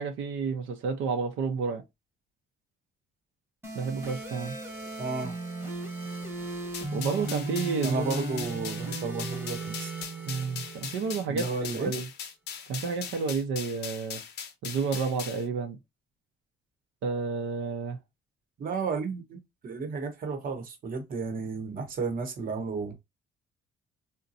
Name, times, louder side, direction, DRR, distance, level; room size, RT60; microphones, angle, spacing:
voice 1, 0.0-1.8 3.7-4.5 6.9-8.1 10.2-11.5 11.8-12.1 12.7-14.2 14.6-15.8 17.0-18.0, right 5 dB, 90° right, 0.7 m, -30 dB
sound 1, 3.6-11.6, right 2 dB, 10° right, 0.9 m, -37 dB
voice 2, 5.0-5.4 7.8-9.9 11.3-11.9 18.6-22.9, right 4 dB, 45° right, 0.9 m, -33 dB
sound 2, 6.7-15.4, left 8 dB, 55° left, 0.6 m, -40 dB
3.9 x 2.2 x 2.6 m
cardioid pair, 160°, 20 cm